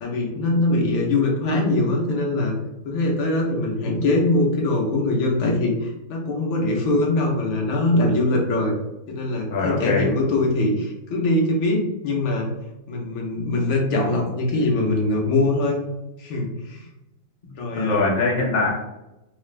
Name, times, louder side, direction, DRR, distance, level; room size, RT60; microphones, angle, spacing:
voice 1, 0.0-2.6 2.8-8.7 9.1-12.5 12.9-15.8 16.2-16.8 17.6-18.0, left 2 dB, 80° left, -1 dB, 1.6 m, -22 dB
voice 2, 9.5-10.1 17.7-18.7, left 3 dB, 45° left, -2 dB, 0.7 m, -22 dB
4.0 x 2.4 x 3.2 m, 0.95 s
omnidirectional pair, 2.2 m